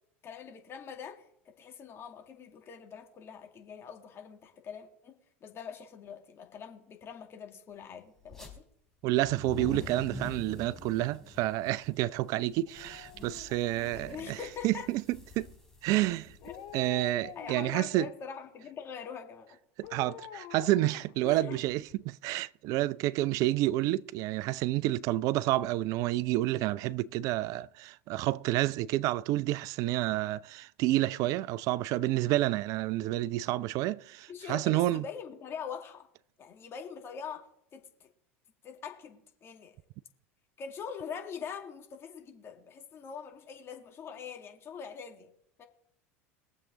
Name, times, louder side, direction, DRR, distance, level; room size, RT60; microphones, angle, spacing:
voice 1, 0.2-8.6 13.9-14.9 16.4-16.5 17.3-19.6 21.2-21.6 34.3-36.1 36.4-38.1 38.6-39.7 40.6-45.3 45.6-45.7, left 7 dB, 35° left, 2.4 m, -43 dB
sound 1, 8.2-8.5 9.1-17.6, left 2 dB, 5° left, 4.3 m, -46 dB
voice 2, 9.0-14.4 14.6-15.5 15.8-16.4 16.7-18.1 19.8-35.0, right 16 dB, 55° right, 0.5 m, -29 dB
Dog, 12.6-14.7 16.4-18.1 19.8-21.9 22.3-22.4, left 11 dB, 60° left, 1.8 m, -48 dB
22.0 x 7.4 x 3.9 m
hypercardioid pair, 80°, 7 cm